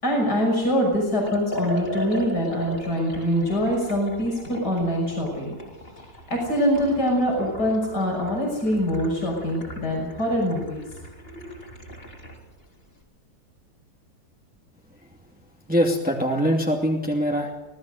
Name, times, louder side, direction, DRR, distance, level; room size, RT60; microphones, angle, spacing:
voice 1, 0.0-5.5 6.3-10.9 11.3-11.4, equal, 65° left, 0 dB, 6.8 m, -24 dB
Liquid, 1.2-12.4, equal, 35° left, 4.2 m, -38 dB
voice 2, 15.7-17.5, equal, 5° right, 0 dB, 2.5 m, -22 dB
25.5 x 18.0 x 6.6 m, 1.1 s
omnidirectional pair, 1.9 m